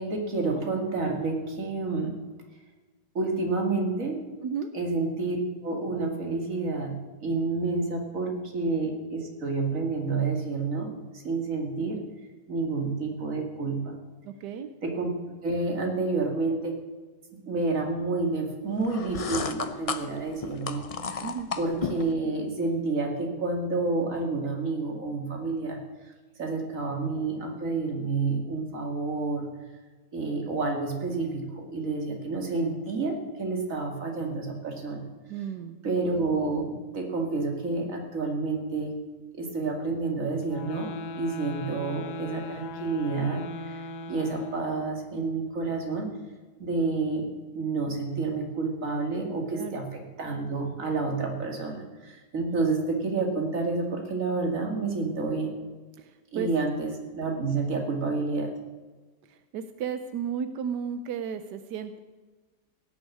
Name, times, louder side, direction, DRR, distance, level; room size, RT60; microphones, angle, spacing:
voice 1, 0.0-2.2 3.1-4.2 4.7-5.4 5.6-7.0 7.2-11.0 11.2-12.0 12.5-14.0 14.8-15.1 15.4-16.8 17.5-20.8 21.6-25.8 26.4-29.5 30.1-35.0 35.8-38.9 39.3-40.9 41.2-46.1 46.6-47.3 47.5-55.5 56.3-58.5, right 3 dB, 50° right, 2 dB, 2.6 m, -29 dB
voice 2, 14.2-14.7 21.2-21.5 35.3-35.8 49.5-49.8 56.0-56.5 57.4-57.5 59.3-62.0, right 7 dB, 90° right, 10 dB, 1.3 m, -34 dB
sound 1, 18.8-22.1, left 5 dB, 55° left, 0.3 m, -33 dB
sound 2, 40.4-45.0, left 2 dB, 75° left, 1.4 m, -38 dB
16.5 x 7.1 x 8.6 m, 1.3 s
omnidirectional pair, 1.8 m